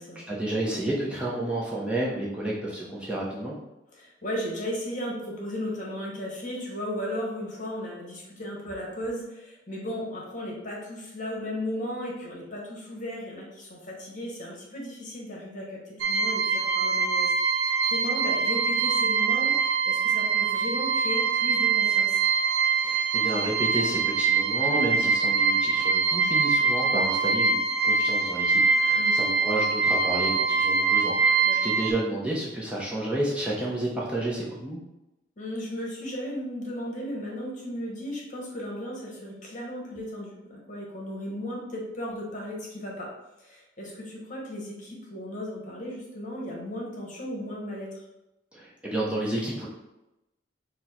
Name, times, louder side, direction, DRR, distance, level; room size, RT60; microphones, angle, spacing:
voice 1, 0.3-3.6 22.8-34.8 48.5-49.7, right 1 dB, 5° right, -5 dB, 0.6 m, -31 dB
voice 2, 3.9-22.2 29.0-29.2 31.4-31.7 35.4-43.1 43.4-48.0, equal, 45° left, -3 dB, 1.1 m, -35 dB
sound 1, 16.0-31.9, right 5 dB, 85° right, 0.5 m, -24 dB
4.3 x 2.1 x 4.2 m, 0.94 s
head